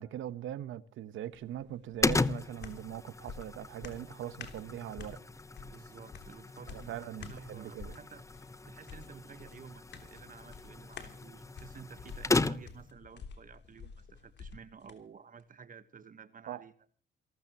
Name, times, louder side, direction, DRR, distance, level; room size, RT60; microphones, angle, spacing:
voice 1, 0.0-5.2 6.7-8.0 16.5-16.6, right 11 dB, 80° right, 1.1 m, -41 dB
sound 1, 1.3-15.0 15.4-15.5, left 5 dB, 60° left, 3.2 m, -50 dB
sound 2, 2.0-12.9, left 3 dB, 15° left, 0.9 m, -36 dB
voice 2, 5.6-8.2 8.7-16.7, right 6 dB, 45° right, 1.3 m, -52 dB
28.0 x 13.0 x 3.0 m
cardioid pair, 90°, 20 cm